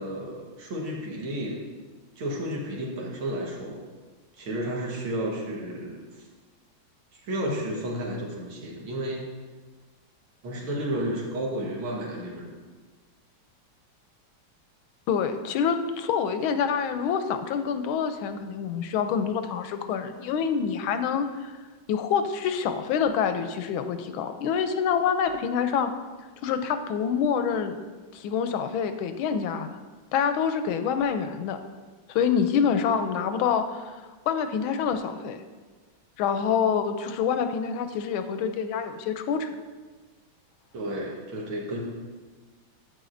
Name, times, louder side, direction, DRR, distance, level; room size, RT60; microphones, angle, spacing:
voice 1, 0.0-1.6 2.2-3.8 4.4-6.0 7.1-9.3 10.4-12.6 40.7-41.8, right 1 dB, 80° right, -2 dB, 2.2 m, -32 dB
voice 2, 15.1-21.5 21.9-25.9 26.4-27.8 28.1-29.7 30.1-31.6 32.1-35.4 36.2-39.5, left 7 dB, 85° left, 9 dB, 1.4 m, -26 dB
9.1 x 8.5 x 2.6 m, 1.3 s
omnidirectional pair, 2.3 m